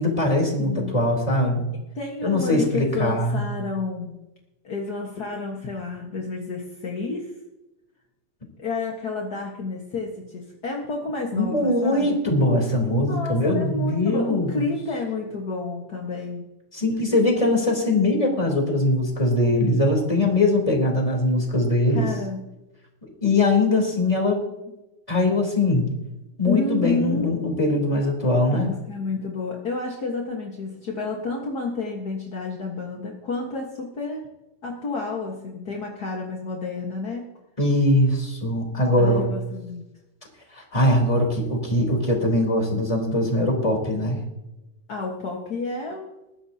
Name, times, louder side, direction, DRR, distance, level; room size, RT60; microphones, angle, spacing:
voice 1, 0.0-1.6 2.2-3.4 11.3-14.6 16.7-22.1 23.0-24.4 25.1-25.9 26.4-28.7 37.6-39.2 40.5-44.2, left 1 dB, 10° left, 0 dB, 3.4 m, -21 dB
voice 2, 0.6-1.0 1.9-4.2 4.6-7.3 8.6-12.2 13.0-16.4 21.9-22.5 26.4-27.3 28.5-34.2 34.6-37.3 39.0-39.8 44.9-46.1, left 3 dB, 45° left, -1 dB, 1.2 m, -30 dB
21.0 x 15.5 x 2.9 m, 0.97 s
omnidirectional pair, 4.0 m